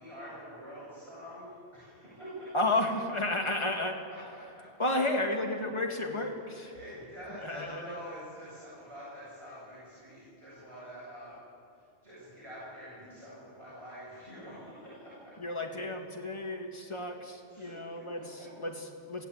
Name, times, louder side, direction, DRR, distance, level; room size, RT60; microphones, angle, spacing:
voice 1, 0.0-2.5 4.1-4.2 4.6-5.1 6.5-11.4 12.0-15.3 17.5-17.8 18.1-18.5, equal, 25° right, -10 dB, 7.9 m, -46 dB
voice 2, 2.5-4.0 4.8-6.7 7.3-8.0 15.4-19.3, left 2 dB, 25° left, 2 dB, 2.1 m, -32 dB
24.0 x 15.5 x 8.8 m, 2.4 s
omnidirectional pair, 1.2 m